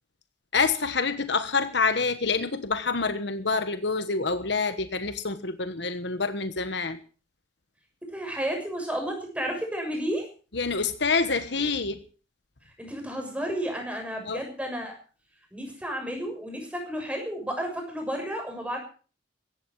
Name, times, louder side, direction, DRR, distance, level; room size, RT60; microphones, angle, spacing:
voice 1, 0.5-7.0 10.5-12.0 14.3-14.4, left 4 dB, 60° left, 1.3 m, -27 dB
voice 2, 8.1-10.3 12.8-15.0 15.5-18.8, equal, 5° right, 6.7 m, -32 dB
16.5 x 15.0 x 4.7 m
head